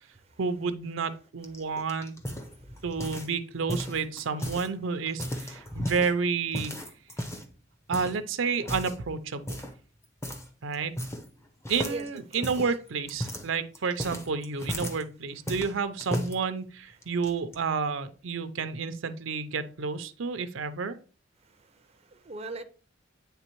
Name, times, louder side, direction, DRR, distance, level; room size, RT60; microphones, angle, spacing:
voice 1, 0.4-2.2 2.8-6.8 7.9-9.6 10.6-10.9 11.7-21.0, right 5 dB, 75° right, 0.6 m, -30 dB
sound 1, 1.4-3.4 3.7-4.7 5.1-6.1 6.5-7.5 7.9-8.2 8.6-9.0 9.5-9.8 10.2-10.5 10.7-11.4 11.6-15.0 15.5-16.3 17.0-17.6, equal, 15° left, 0.6 m, -35 dB
voice 2, 2.5-2.8 5.6-5.9 11.8-12.5 21.4-22.6, right 3 dB, 30° right, 0.5 m, -42 dB
9.1 x 3.4 x 3.0 m
head